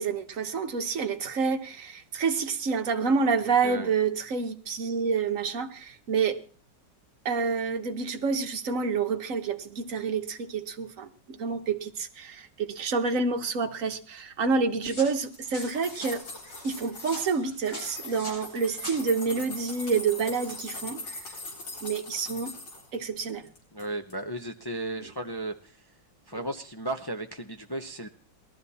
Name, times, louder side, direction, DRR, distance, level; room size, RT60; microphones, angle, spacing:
voice 1, 0.0-6.4 7.2-16.2 16.6-21.2 21.8-22.5 22.9-23.4, right 5 dB, 50° right, 1.4 m, -28 dB
voice 2, 3.4-3.9 23.7-25.7 26.3-28.1, right 1 dB, 35° left, 0.4 m, -35 dB
sound 1, 14.8-19.0, left 1 dB, 60° left, 8.4 m, -43 dB
sound 2, 15.2-17.4 17.7-22.9 23.3-23.8 24.1-24.2, left 2 dB, 75° left, 4.7 m, -41 dB
19.0 x 13.0 x 4.2 m
omnidirectional pair, 1.9 m